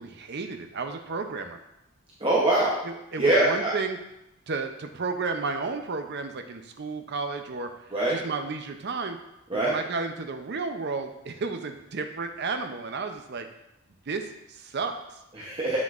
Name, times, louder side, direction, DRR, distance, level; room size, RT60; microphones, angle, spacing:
voice 1, 0.0-1.6 2.8-4.0 4.5-9.2 9.5-13.5 14.1-15.2, right 4 dB, 50° right, 6 dB, 0.6 m, -32 dB
voice 2, 2.2-2.8 3.2-3.7 7.9-8.2 9.5-9.7 15.3-15.8, right 2 dB, 25° right, -5 dB, 0.8 m, -23 dB
7.3 x 5.9 x 2.5 m, 0.87 s
head